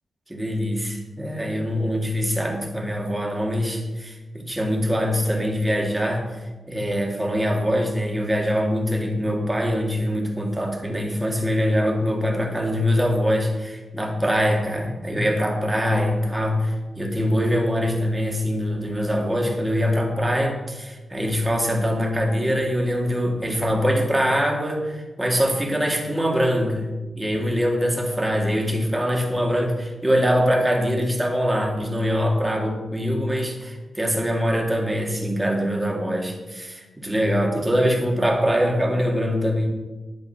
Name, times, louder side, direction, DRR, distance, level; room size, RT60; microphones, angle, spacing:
voice 1, 0.3-6.4 6.7-39.7, equal, 10° right, 0 dB, 2.2 m, -23 dB
10.5 x 9.3 x 5.7 m, 1.2 s
wide cardioid pair, 140°, 0 cm